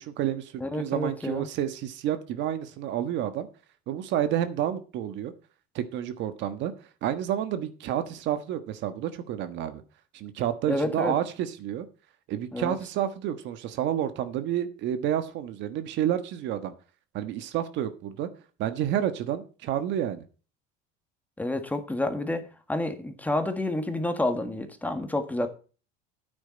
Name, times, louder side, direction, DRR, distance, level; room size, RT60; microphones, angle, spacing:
voice 1, 0.0-3.5 3.9-5.3 5.7-6.7 7.0-9.8 10.1-11.9 12.3-16.7 17.1-18.3 18.6-20.2, right 11 dB, 60° right, 1.3 m, -29 dB
voice 2, 0.6-1.5 10.7-11.1 12.5-12.8 21.4-25.5, left 1 dB, 5° left, 1.6 m, -29 dB
10.0 x 9.1 x 4.3 m
supercardioid pair, 115°, 21 cm